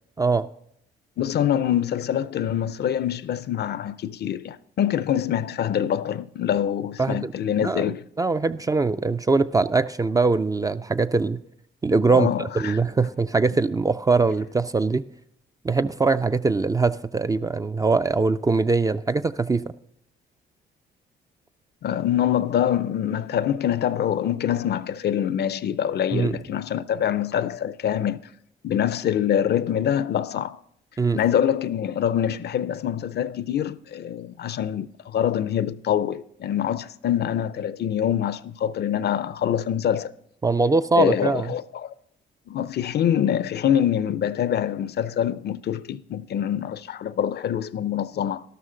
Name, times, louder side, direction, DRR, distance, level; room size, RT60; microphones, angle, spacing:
voice 1, 0.2-0.5 7.0-7.3 7.6-7.8 8.2-11.4 11.8-15.0 15.6-19.6 26.1-26.3 31.0-31.2 40.4-41.5, right 3 dB, 20° right, 0.3 m, -22 dB
voice 2, 1.2-8.0 12.1-12.8 21.8-28.2 28.6-30.6 31.1-40.1 40.9-41.9 42.5-48.4, left 10 dB, 55° left, 0.5 m, -25 dB
12.5 x 12.0 x 3.8 m
cardioid pair, 90°, 20 cm